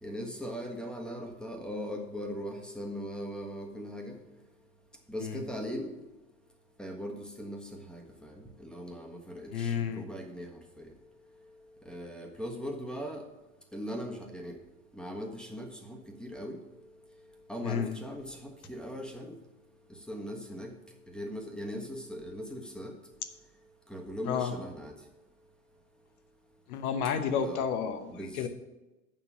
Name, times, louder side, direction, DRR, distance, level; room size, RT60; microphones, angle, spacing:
voice 1, 0.0-4.1 5.1-5.9 6.8-7.6 7.9-8.3 8.6-10.5 10.8-10.9 11.9-13.2 13.7-14.5 15.0-16.6 17.5-18.3 18.7-19.3 20.1-20.7 21.1-22.9 23.9-24.9 27.3-27.6 28.1-28.5, equal, ahead, 2 dB, 1.4 m, -39 dB
voice 2, 9.5-10.0 17.6-17.9 24.3-24.6 26.7-28.5, left 7 dB, 70° left, 9 dB, 1.1 m, -31 dB
7.4 x 5.4 x 7.3 m, 1.1 s
hypercardioid pair, 85°, 45 cm